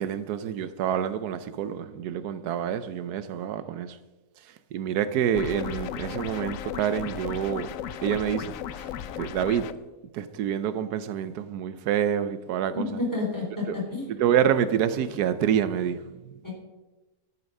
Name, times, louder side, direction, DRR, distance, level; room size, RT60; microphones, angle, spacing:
voice 1, 0.0-4.0 4.7-7.7 8.0-8.9 9.2-9.7 10.1-12.9 13.7-13.8 14.2-16.0, right 9 dB, 85° right, 1.2 m, -27 dB
sound 1, 5.3-9.7, left 10 dB, 70° left, 1.0 m, -35 dB
voice 2, 12.7-14.1 16.4-16.5, left 3 dB, 10° left, 3.9 m, -30 dB
12.5 x 9.1 x 5.4 m
omnidirectional pair, 1.6 m